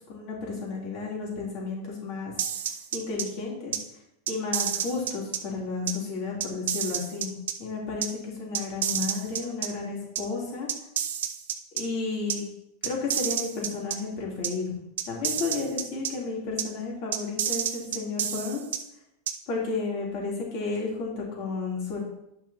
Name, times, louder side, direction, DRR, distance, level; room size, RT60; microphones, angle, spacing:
voice 1, 0.1-2.3 2.9-3.7 4.3-7.3 7.6-10.7 11.7-12.5 12.8-14.7 15.1-18.6 19.5-22.0, left 4 dB, 50° left, -3 dB, 3.6 m, -32 dB
sound 1, 2.4-3.2 3.7-3.8 4.3-5.4 5.9-6.0 6.4-7.5 8.0-8.1 8.5-9.7 10.2-10.3 10.7-11.8 12.3-12.4 12.8-14.0 14.4-14.5 15.0-16.1 16.6-16.7 17.1-18.8 19.3-19.4, right 9 dB, 85° right, 0.8 m, -29 dB
9.8 x 5.6 x 4.3 m, 0.82 s
supercardioid pair, 140°, 0 cm